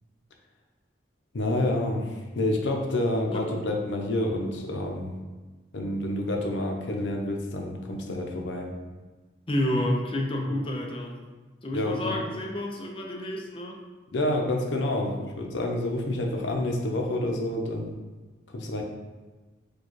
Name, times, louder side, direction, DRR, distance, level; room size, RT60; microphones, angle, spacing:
voice 1, 1.3-5.1 5.7-8.7 11.7-12.2 14.1-17.9 18.5-18.8, left 1 dB, 85° left, 1 dB, 0.6 m, -28 dB
voice 2, 9.5-11.2 11.6-13.8, left 1 dB, 30° left, 1 dB, 0.4 m, -29 dB
4.5 x 2.3 x 3.1 m, 1.3 s
head